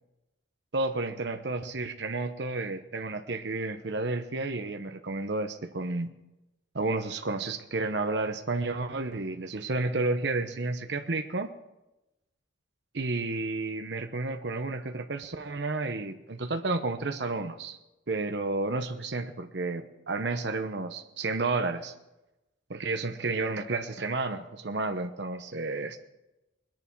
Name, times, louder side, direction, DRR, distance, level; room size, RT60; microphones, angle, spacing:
voice 1, 0.7-6.1 6.7-11.5 12.9-17.8 18.1-21.9 22.7-26.0, right 3 dB, 65° right, 6 dB, 0.9 m, -31 dB
22.0 x 10.5 x 4.6 m, 0.96 s
head